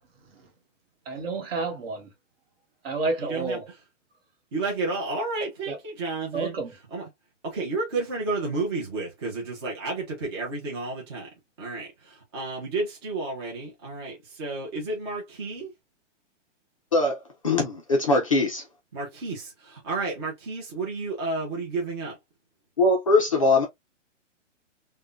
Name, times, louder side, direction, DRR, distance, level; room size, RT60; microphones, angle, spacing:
voice 1, 1.1-2.1 2.8-3.7 5.7-5.8 6.3-6.7, right 3 dB, 50° right, 1.3 m, -30 dB
voice 2, 3.2-3.6 4.5-6.6 6.9-7.1 7.4-11.3 11.6-15.7 18.9-22.2, right 3 dB, 20° right, 0.6 m, -31 dB
voice 3, 16.9-18.6 22.8-23.6, left 2 dB, 30° left, 0.4 m, -22 dB
3.5 x 2.2 x 2.4 m
hypercardioid pair, 170°, 37 cm